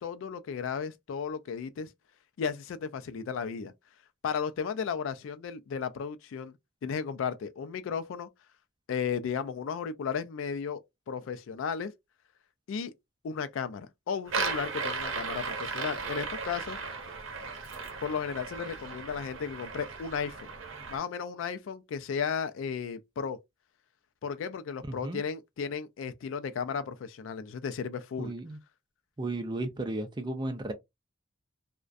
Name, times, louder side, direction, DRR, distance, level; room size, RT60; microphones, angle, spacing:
voice 1, 0.0-1.9 2.4-3.7 4.2-6.5 6.8-8.3 8.9-11.9 12.7-12.9 13.2-16.8 18.0-20.5 20.9-23.4 24.2-28.3, left 6 dB, 75° left, 0.3 m, -34 dB
sound 1, 14.3-21.0, right 4 dB, 80° right, 0.7 m, -36 dB
voice 2, 28.2-28.6 29.2-30.7, right 2 dB, 20° right, 0.4 m, -34 dB
2.5 x 2.1 x 2.3 m
head